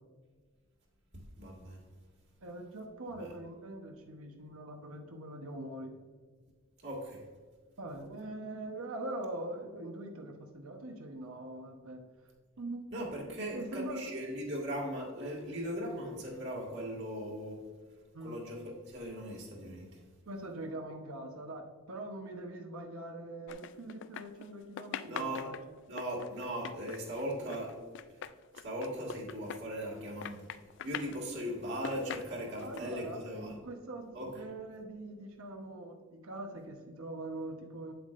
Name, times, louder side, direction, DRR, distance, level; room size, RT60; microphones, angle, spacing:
voice 1, 1.4-1.8 3.2-3.3 6.8-7.2 12.9-17.6 18.2-19.9 25.1-25.4 25.9-27.7 28.6-30.4 30.8-33.6 34.1-34.3, equal, 55° right, -3 dB, 2.1 m, -38 dB
voice 2, 2.4-5.9 7.8-12.0 12.6-12.9 13.5-14.2 18.1-18.4 20.3-25.6 32.6-37.9, right 1 dB, 85° right, 2 dB, 0.9 m, -43 dB
sound 1, 23.5-24.5 24.8-30.0 30.2-31.2 31.7-32.8, left 8 dB, 60° left, 0.3 m, -42 dB
8.2 x 7.8 x 2.5 m, 1.5 s
head